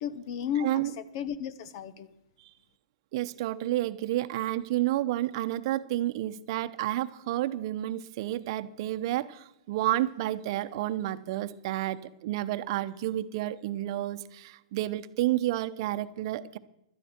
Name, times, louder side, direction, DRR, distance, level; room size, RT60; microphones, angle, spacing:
voice 1, 0.0-2.1, left 8 dB, 55° left, 17 dB, 1.1 m, -34 dB
voice 2, 0.6-0.9 3.1-16.6, right 14 dB, 55° right, 12 dB, 0.8 m, -30 dB
17.0 x 12.5 x 4.5 m, 0.84 s
hypercardioid pair, 125°, 3 cm